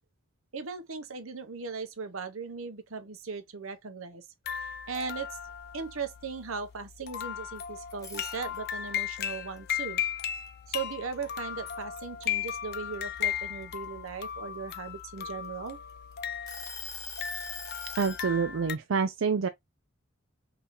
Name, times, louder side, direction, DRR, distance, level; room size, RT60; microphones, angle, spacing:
voice 1, 0.5-4.2 4.9-5.4 5.7-10.0 10.7-15.8, right 5 dB, 90° right, 0.9 m, -38 dB
sound 1, 4.5-18.8, left 9 dB, 50° left, 0.6 m, -36 dB
sound 2, 7.9-8.9 9.3-11.1 11.6-11.8 12.3-14.1 14.8-15.9 16.5-18.2, left 5 dB, 15° left, 1.0 m, -42 dB
voice 2, 18.0-19.5, right 5 dB, 70° right, 0.4 m, -27 dB
5.4 x 2.9 x 2.6 m
head